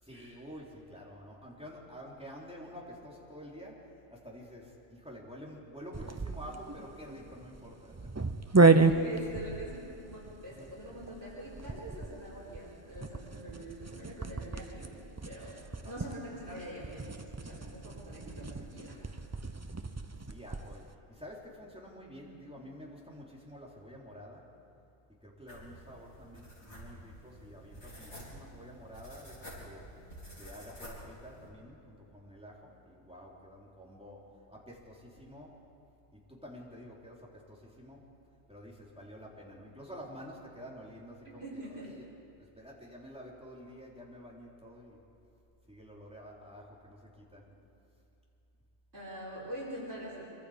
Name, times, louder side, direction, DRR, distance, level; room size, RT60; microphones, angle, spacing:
voice 1, 0.0-8.1 9.1-9.2 10.5-10.7 15.8-16.2 20.3-24.5 25.2-29.9 30.3-35.6 36.1-38.0 38.5-42.1 42.4-45.0 45.7-47.5, equal, 5° right, -4 dB, 3.5 m, -49 dB
sound 1, 5.9-20.8, right 3 dB, 25° right, 0.4 m, -32 dB
voice 2, 8.5-14.9 15.2-19.0 41.2-41.9 48.9-50.3, right 1 dB, 80° right, -7 dB, 5.1 m, -44 dB
sound 2, 25.5-31.5, equal, 65° left, 5.3 m, -50 dB
25.5 x 24.0 x 5.1 m, 2.8 s
omnidirectional pair, 1.2 m